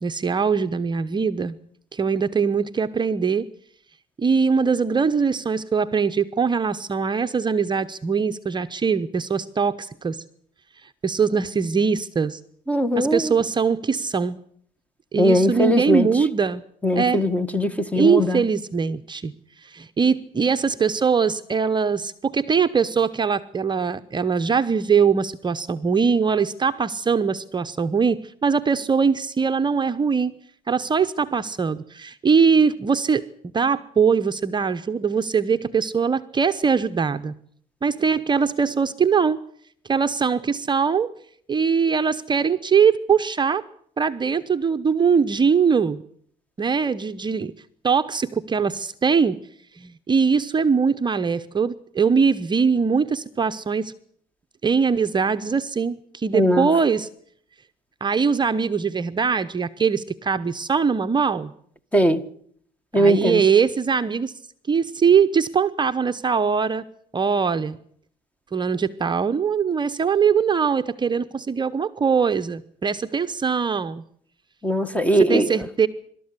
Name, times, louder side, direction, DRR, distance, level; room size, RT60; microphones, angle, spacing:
voice 1, 0.0-1.6 1.9-3.5 4.2-10.2 10.8-12.4 12.9-14.4 15.1-16.6 16.9-17.2 18.0-19.3 19.6-30.3 30.7-33.2 33.5-37.3 37.8-39.4 39.9-41.1 41.5-43.6 44.0-46.0 46.6-47.5 47.8-49.4 49.7-53.9 54.6-57.1 58.0-61.5 62.9-64.3 64.7-66.8 67.1-67.8 68.5-74.0 75.2-75.9, right 6 dB, 25° right, 0.9 m, -21 dB
voice 2, 12.7-13.3 15.2-16.1 16.8-18.4 56.3-56.7 61.9-62.2 62.9-63.4 74.6-75.6, equal, 10° left, 1.8 m, -20 dB
25.0 x 13.0 x 9.7 m
cardioid pair, 110°, 17 cm